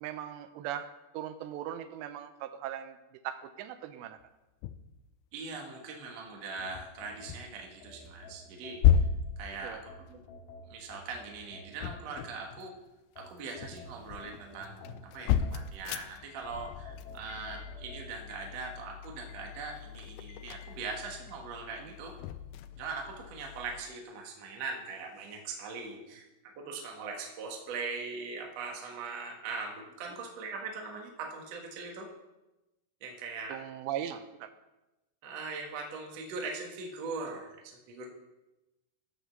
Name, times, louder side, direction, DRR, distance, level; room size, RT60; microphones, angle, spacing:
voice 1, 0.0-3.0 3.2-4.2 9.6-9.8 21.8-21.9 33.5-34.5, right 10 dB, 85° right, 10 dB, 2.8 m, -39 dB
sound 1, 4.2-4.3 4.6-5.0 6.7-7.6 8.1-8.3 8.8-10.8 11.5-12.9 13.3-23.8, left 9 dB, 85° left, 2.3 m, -34 dB
voice 2, 5.3-9.0 9.4-10.2 10.7-12.7 13.2-22.1 22.8-26.3 26.6-32.1 33.0-33.6 35.2-38.1, right 4 dB, 60° right, 1 dB, 1.7 m, -41 dB
sound 2, 6.6-9.4 9.9-12.6 13.2-15.9 16.4-18.1, left 2 dB, 65° left, 3.5 m, -51 dB
12.0 x 5.1 x 6.8 m, 1.0 s
omnidirectional pair, 5.1 m